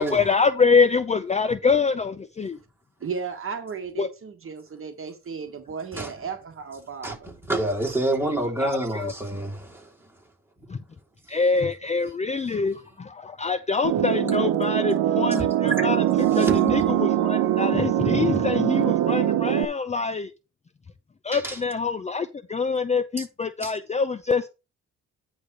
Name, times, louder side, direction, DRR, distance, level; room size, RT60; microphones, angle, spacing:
voice 1, 0.0-2.6 4.0-4.1 8.6-9.1 10.7-10.8 11.3-15.4 15.8-16.0 16.3-20.3 21.2-24.5, left 5 dB, 20° left, 0.6 m, -25 dB
voice 2, 3.0-7.3, right 6 dB, 45° right, 1.4 m, -35 dB
voice 3, 7.0-10.1 11.3-11.4 16.3-17.0 21.3-21.6 23.2-23.3 23.6-23.7, right 1 dB, 5° right, 3.2 m, -28 dB
sound 1, 13.8-19.6, right 12 dB, 90° right, 0.9 m, -22 dB
9.7 x 3.5 x 6.5 m
cardioid pair, 90°, 30 cm